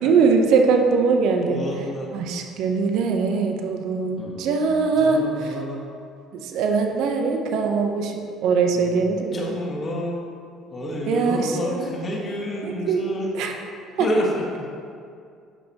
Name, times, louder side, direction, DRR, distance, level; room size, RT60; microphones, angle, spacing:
voice 1, 0.0-1.7 2.1-5.6 6.3-9.5 11.1-12.0 12.6-13.0 13.3-13.6 14.0-14.1, right 5 dB, 65° right, 4 dB, 0.7 m, -22 dB
voice 2, 1.5-2.2 4.2-5.8 8.7-8.9 9.3-10.2 10.7-13.3 14.0-14.4, equal, 40° left, -2 dB, 1.7 m, -29 dB
10.5 x 5.6 x 2.9 m, 2.3 s
hypercardioid pair, 60°, 0 cm